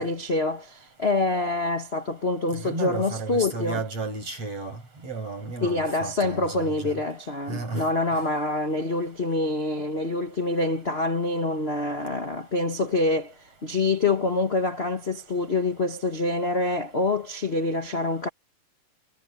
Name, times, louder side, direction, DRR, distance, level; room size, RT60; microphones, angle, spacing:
voice 1, 0.0-3.8 5.6-13.3 13.6-18.3, left 2 dB, 35° left, 1.1 m, -26 dB
voice 2, 2.6-7.0 7.5-7.9 8.1-8.2, right 3 dB, 55° right, 7.2 m, -33 dB
omnidirectional pair, 3.3 m